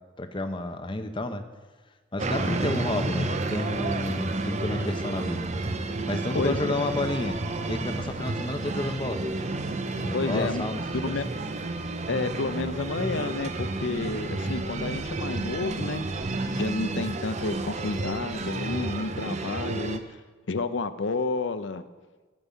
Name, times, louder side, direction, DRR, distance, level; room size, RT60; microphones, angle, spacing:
voice 1, 0.2-1.4 2.1-5.5 6.1-7.4 7.7-9.2 10.0-10.8 11.1-11.2, left 2 dB, 25° left, 8 dB, 0.7 m, -30 dB
sound 1, 2.2-20.0, right 2 dB, 35° right, 0.7 m, -31 dB
voice 2, 6.3-6.8 10.1-10.6 10.9-11.3 12.1-16.0 16.6-20.2 20.5-21.8, left 3 dB, 70° left, 12 dB, 0.6 m, -30 dB
14.0 x 5.4 x 8.3 m, 1.3 s
head